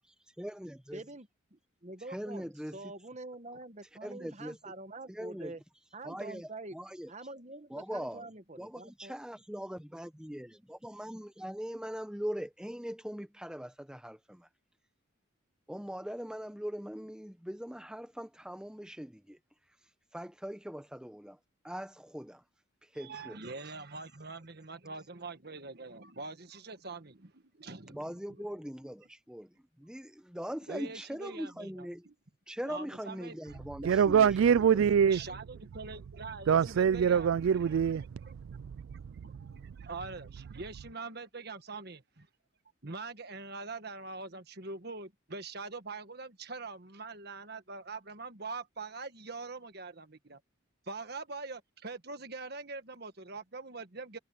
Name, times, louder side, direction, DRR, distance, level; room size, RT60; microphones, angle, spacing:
voice 1, 0.4-1.0 2.1-2.8 4.0-4.6 5.1-5.5 6.0-7.1 7.7-8.3 8.6-14.5 15.7-19.4 20.1-21.4 21.6-22.4 22.8-23.4 27.9-32.1 32.5-34.8, equal, 5° right, 1.0 m, -41 dB
voice 2, 0.9-5.6 5.9-6.8 7.1-9.1, right 2 dB, 35° right, 1.2 m, -46 dB
voice 3, 22.9-28.5 30.7-32.1 32.6-34.0 35.1-37.9 38.2-38.3 39.2-42.3 42.8-50.4 50.9-54.2, right 3 dB, 50° right, 1.6 m, -44 dB
voice 4, 33.8-35.2 36.5-39.8, right 7 dB, 75° right, 0.3 m, -26 dB
head